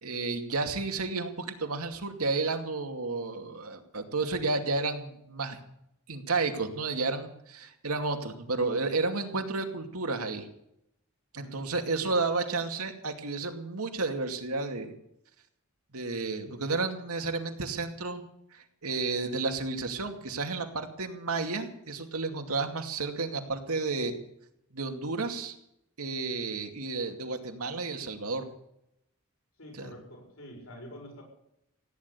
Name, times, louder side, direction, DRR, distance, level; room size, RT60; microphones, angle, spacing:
voice 1, 0.0-5.6 6.1-10.5 11.3-14.9 15.9-18.2 18.5-24.1 24.7-25.6 26.0-28.4 29.8-29.9, right 3 dB, 90° right, 5 dB, 2.4 m, -32 dB
voice 2, 11.3-12.2 29.6-31.2, equal, 70° left, 2 dB, 6.5 m, -47 dB
16.5 x 10.0 x 8.4 m, 0.77 s
head